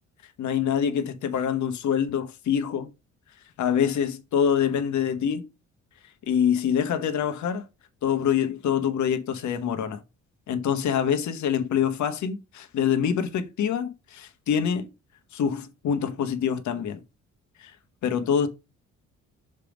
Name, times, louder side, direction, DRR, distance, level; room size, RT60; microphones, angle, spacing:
voice 1, 0.4-2.9 3.6-5.5 6.2-7.6 8.0-10.0 10.5-14.9 15.3-17.0 17.6-17.7 18.0-18.5, left 8 dB, 70° left, 1.2 m, -25 dB
6.5 x 3.6 x 5.0 m
cardioid pair, 90°, 30 cm